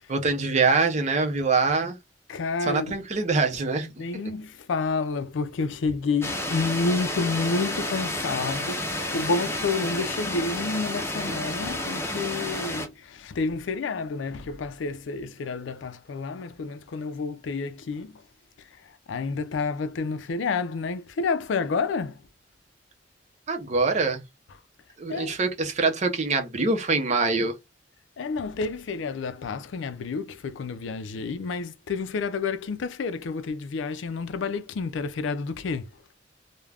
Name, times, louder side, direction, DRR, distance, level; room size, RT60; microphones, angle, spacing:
voice 1, 0.1-2.0 2.6-4.0 23.5-24.2 25.0-27.5, right 3 dB, 40° right, 0.6 m, -24 dB
voice 2, 2.3-3.0 3.8-18.1 19.1-22.2 25.1-25.4 28.2-35.9, left 4 dB, 90° left, 0.4 m, -29 dB
sound 1, 6.2-12.9, left 1 dB, 15° left, 0.6 m, -30 dB
2.4 x 2.1 x 3.2 m
head